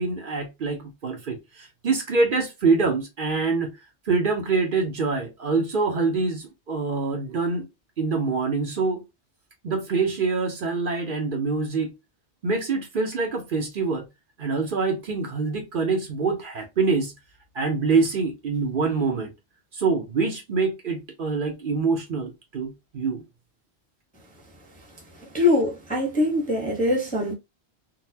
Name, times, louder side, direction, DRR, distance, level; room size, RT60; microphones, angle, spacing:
voice 1, 0.0-3.7 4.1-7.7 8.0-9.0 9.6-11.9 12.4-14.1 14.4-17.1 17.5-19.3 19.7-23.2, right 4 dB, 55° right, 0.8 m, -25 dB
voice 2, 25.3-27.3, left 2 dB, 10° left, 0.6 m, -22 dB
3.9 x 2.2 x 2.7 m
omnidirectional pair, 1.1 m